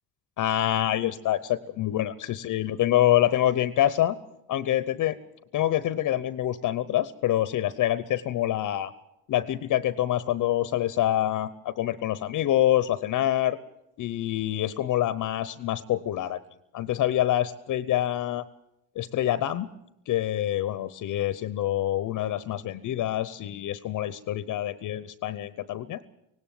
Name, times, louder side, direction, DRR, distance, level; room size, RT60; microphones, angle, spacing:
voice 1, 0.4-4.2 4.5-5.2 5.5-8.9 9.3-13.6 14.0-16.4 16.7-18.4 19.0-19.7 20.1-26.0, left 12 dB, 50° left, 16 dB, 0.9 m, -26 dB
18.0 x 17.5 x 9.2 m, 0.82 s
supercardioid pair, 100°, 40 cm